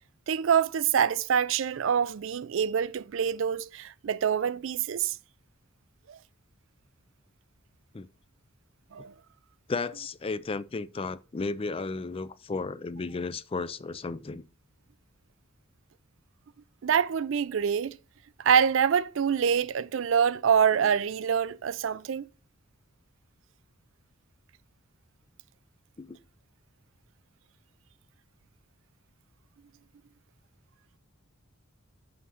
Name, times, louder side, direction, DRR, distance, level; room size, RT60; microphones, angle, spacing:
voice 1, 0.3-5.2 6.1-6.2 8.9-9.1 16.8-18.0 18.4-22.2, right 7 dB, 65° right, 0.4 m, -25 dB
voice 2, 9.7-14.4 26.0-26.2, left 3 dB, 25° left, 0.4 m, -34 dB
6.2 x 5.9 x 5.6 m
head